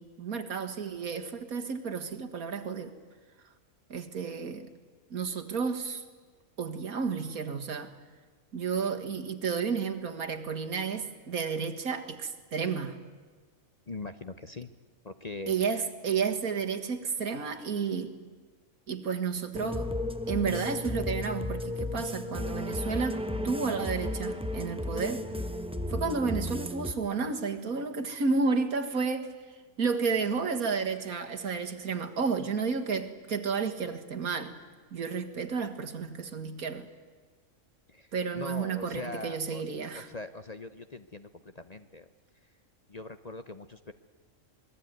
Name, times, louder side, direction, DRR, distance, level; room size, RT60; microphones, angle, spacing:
voice 1, 0.0-3.0 3.9-4.7 5.1-6.0 6.6-7.9 8.5-13.0 15.5-18.1 18.9-19.9 20.3-25.2 25.9-29.3 29.8-34.5 34.9-36.9 38.1-40.1, right 5 dB, 80° right, 6 dB, 2.2 m, -31 dB
voice 2, 13.9-14.7 15.0-15.9 37.9-39.6 39.9-42.1 42.9-43.9, left 2 dB, 35° left, 10 dB, 0.8 m, -42 dB
sound 1, 19.5-26.9, left 1 dB, 5° right, 0.8 m, -34 dB
26.5 x 21.5 x 9.4 m, 1.4 s
omnidirectional pair, 1.5 m